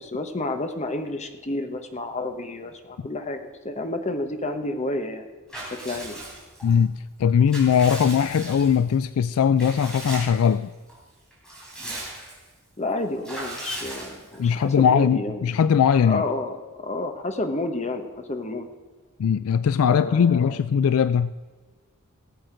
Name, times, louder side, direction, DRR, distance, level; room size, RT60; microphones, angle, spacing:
voice 1, 0.0-5.3 5.6-6.3 12.8-15.4 16.0-18.7 19.8-20.6, left 2 dB, 30° left, 7 dB, 1.0 m, -30 dB
Water / Bathtub (filling or washing) / Liquid, 5.5-6.7 7.2-8.9 9.6-10.5 10.9-11.0 11.3-12.5 13.2-14.5, right 1 dB, 5° left, 3.7 m, -37 dB
voice 2, 6.6-6.9 7.2-10.7 14.4-16.2 19.2-21.3, left 7 dB, 65° left, 15 dB, 0.3 m, -20 dB
17.5 x 7.8 x 5.0 m, 1.3 s
head